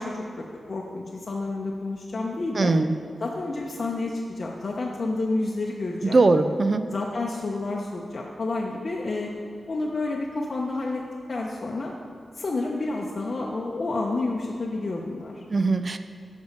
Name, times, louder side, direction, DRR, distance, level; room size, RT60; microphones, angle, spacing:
voice 1, 0.0-2.7 3.2-6.2 6.9-9.3 9.7-11.0 11.3-11.9 12.4-15.4, left 2 dB, 50° left, -2 dB, 0.7 m, -29 dB
voice 2, 2.6-2.9 6.0-6.8 15.5-16.0, right 3 dB, 45° right, 10 dB, 0.4 m, -20 dB
7.0 x 5.3 x 5.3 m, 2.4 s
wide cardioid pair, 85°, 0 cm